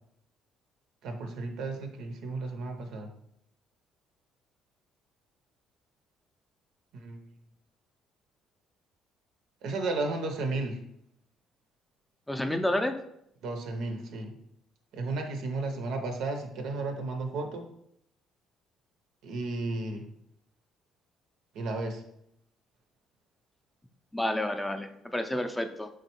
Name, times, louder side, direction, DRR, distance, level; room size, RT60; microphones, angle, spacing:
voice 1, 1.0-3.1 6.9-7.2 9.6-10.8 13.4-14.3 14.9-17.7 19.2-20.0 21.5-22.0, right 3 dB, 70° right, 5 dB, 0.5 m, -33 dB
voice 2, 12.3-13.0 24.1-25.9, left 1 dB, 10° left, 7 dB, 0.4 m, -30 dB
3.8 x 3.3 x 2.9 m, 0.75 s
hypercardioid pair, 60°, 0 cm